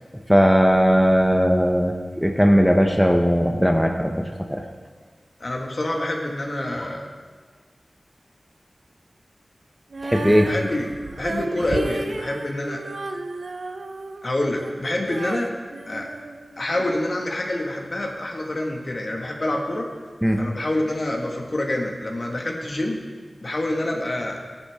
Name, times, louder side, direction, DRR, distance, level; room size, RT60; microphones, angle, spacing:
voice 1, 0.3-2.0 2.2-4.6 10.0-10.5 20.2-20.4, equal, ahead, 2 dB, 0.9 m, -18 dB
voice 2, 5.4-7.1 10.4-10.9 11.2-12.8 14.2-15.5 15.9-16.1 16.6-19.9 20.4-23.0 23.4-24.4, left 1 dB, 50° left, 0 dB, 1.8 m, -26 dB
Female singing, 9.9-17.0, right 2 dB, 75° right, 0.7 m, -33 dB
16.0 x 10.0 x 3.6 m, 1.5 s
wide cardioid pair, 70°, 0 cm